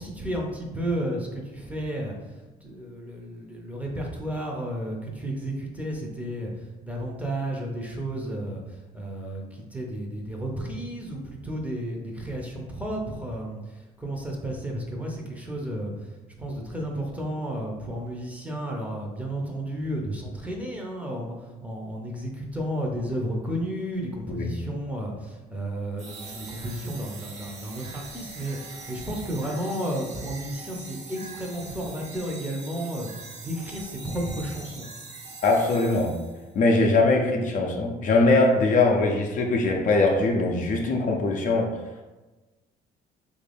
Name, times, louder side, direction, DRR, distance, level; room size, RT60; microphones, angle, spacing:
voice 1, 0.0-2.2 2.6-16.1 16.4-33.1 33.4-34.9, right 1 dB, 10° right, -1 dB, 0.6 m, -32 dB
sound 1, 26.0-36.5, right 3 dB, 40° right, 0.7 m, -43 dB
voice 2, 35.4-36.2 36.5-41.7, left 2 dB, 50° left, 1 dB, 0.5 m, -21 dB
3.2 x 2.5 x 3.4 m, 1.1 s
cardioid pair, 110°, 17 cm